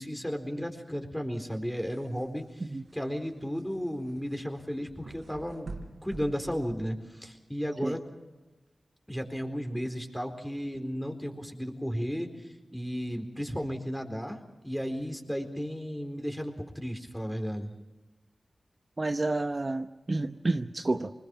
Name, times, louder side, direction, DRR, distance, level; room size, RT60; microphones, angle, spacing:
voice 1, 0.0-2.6 2.9-5.7 6.0-8.0 9.1-14.4 14.6-17.7, equal, 5° left, 4 dB, 4.1 m, -34 dB
sound 1, 1.5-7.3, right 3 dB, 80° right, 4.0 m, -48 dB
voice 2, 19.0-21.1, right 2 dB, 45° right, 7 dB, 0.9 m, -30 dB
25.0 x 20.5 x 6.1 m, 1.1 s
cardioid pair, 40°, 0 cm